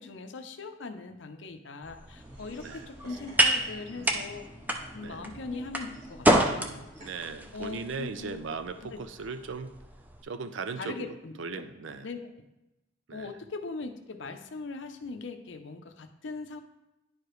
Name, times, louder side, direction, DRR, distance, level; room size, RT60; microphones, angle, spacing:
voice 1, 0.0-4.5 4.9-6.9 7.5-8.4 8.9-9.0 10.8-11.3 12.0-12.2 13.1-16.6, left 3 dB, 65° left, 7 dB, 0.6 m, -40 dB
sound 1, 1.8-10.2, right 1 dB, 10° right, 0.5 m, -30 dB
sound 2, 2.1-7.1, equal, 35° right, 1.3 m, -49 dB
voice 2, 3.9-4.3 5.0-5.2 7.0-9.7 10.2-12.1 13.1-13.4, right 4 dB, 70° right, 10 dB, 0.5 m, -38 dB
10.0 x 4.8 x 3.1 m, 0.95 s
head